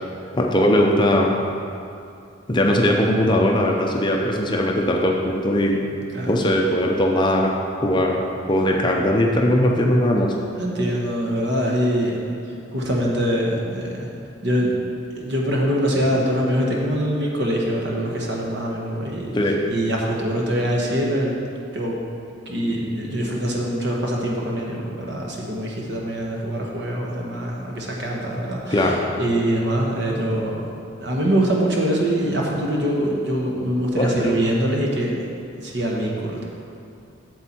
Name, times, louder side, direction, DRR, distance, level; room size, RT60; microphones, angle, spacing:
voice 1, 0.3-1.4 2.5-5.8 6.3-7.5 7.8-10.3 19.3-19.6 28.7-29.0 33.9-34.3, left 1 dB, 25° left, 0 dB, 0.6 m, -19 dB
voice 2, 10.5-12.2 12.7-14.1 14.4-14.8 15.1-19.4 19.7-21.4 21.7-22.0 22.5-30.7 31.0-35.1 35.6-36.4, equal, 60° right, -2 dB, 1.3 m, -23 dB
8.1 x 7.0 x 4.4 m, 2.5 s
head